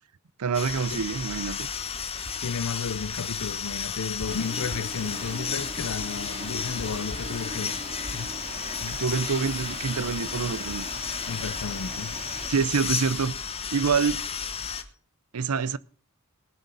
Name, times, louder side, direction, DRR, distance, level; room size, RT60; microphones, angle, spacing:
voice 1, 0.4-1.7 8.9-11.1 12.5-13.4 13.7-14.2 15.3-15.8, right 5 dB, 85° right, 0.6 m, -26 dB
sound 1, 0.5-14.8, left 6 dB, 25° left, 1.0 m, -33 dB
voice 2, 2.4-7.8 8.1-8.3 8.8-9.0 11.3-12.2, left 5 dB, 70° left, 0.6 m, -33 dB
sound 2, 4.3-12.5, right 2 dB, 35° right, 2.3 m, -40 dB
19.5 x 6.6 x 5.4 m
head